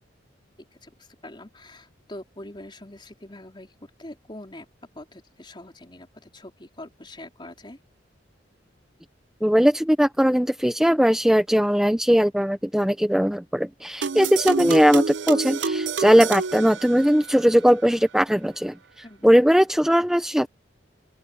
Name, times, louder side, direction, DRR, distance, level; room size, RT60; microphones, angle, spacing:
voice 1, 0.8-3.7 4.0-4.7 4.9-7.8 19.0-19.3, left 1 dB, 25° left, 3.9 m, -43 dB
voice 2, 9.4-18.8 19.2-20.5, equal, 5° right, 0.6 m, -19 dB
sound 1, 14.0-17.5, right 5 dB, 70° right, 0.6 m, -28 dB
open air
head